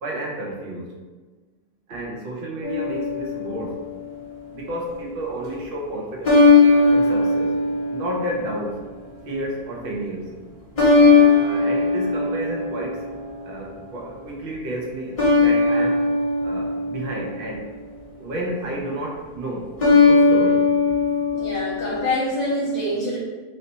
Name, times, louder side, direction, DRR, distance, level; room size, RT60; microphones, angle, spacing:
voice 1, 0.0-0.9 1.9-3.8 4.5-6.4 6.9-7.5 7.9-8.8 9.3-10.3 11.4-13.1 13.4-16.0 16.4-17.7 18.2-20.7, right 1 dB, 45° right, -2 dB, 0.8 m, -31 dB
sound 1, 2.6-4.0 6.2-8.7 10.8-13.4 15.2-17.7 19.8-22.1, left 3 dB, 30° left, 0.6 m, -18 dB
voice 2, 21.3-23.2, left 1 dB, 55° left, -7 dB, 1.2 m, -25 dB
3.3 x 2.7 x 4.1 m, 1.3 s
omnidirectional pair, 1.6 m